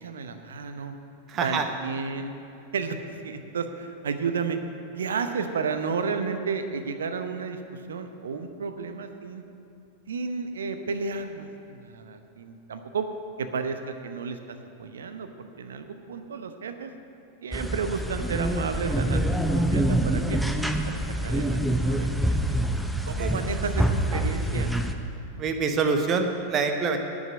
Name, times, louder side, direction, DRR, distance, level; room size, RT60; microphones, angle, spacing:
voice 1, 0.0-0.9 1.4-2.3 2.7-3.0 3.2-4.6 5.0-7.6 7.9-9.4 10.1-13.1 13.4-14.4 14.8-15.3 15.6-16.9 17.4-19.2 19.5-20.4 20.8-22.6 23.1-24.7, right 5 dB, 65° right, 8 dB, 0.8 m, -32 dB
voice 2, 1.3-1.7 23.2-23.3 25.4-27.0, right 5 dB, 30° right, 6 dB, 1.0 m, -25 dB
sound 1, 17.5-24.9, right 1 dB, ahead, 0.7 m, -26 dB
10.5 x 6.4 x 9.1 m, 2.6 s
figure-of-eight pair, 90°, 0 cm